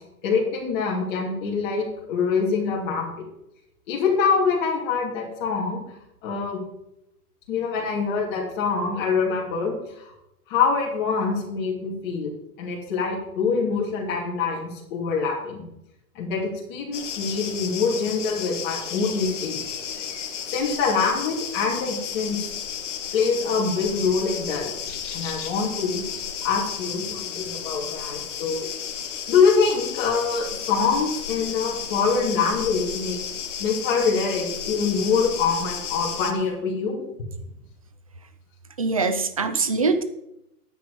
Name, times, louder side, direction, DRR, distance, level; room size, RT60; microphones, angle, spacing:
voice 1, 0.2-3.2 3.9-5.8 6.2-6.6 7.5-10.1 10.5-12.3 12.6-15.7 16.1-19.8 20.5-22.5 23.1-24.7 25.1-26.0 26.4-28.7 29.3-33.2 33.6-37.0, left 5 dB, 30° left, -4 dB, 2.8 m, -24 dB
sound 1, 16.9-36.3, left 8 dB, 50° left, 1.7 m, -33 dB
voice 2, 38.8-40.0, right 4 dB, 25° right, 11 dB, 0.4 m, -23 dB
10.5 x 9.4 x 5.1 m, 0.84 s
hypercardioid pair, 160°, 47 cm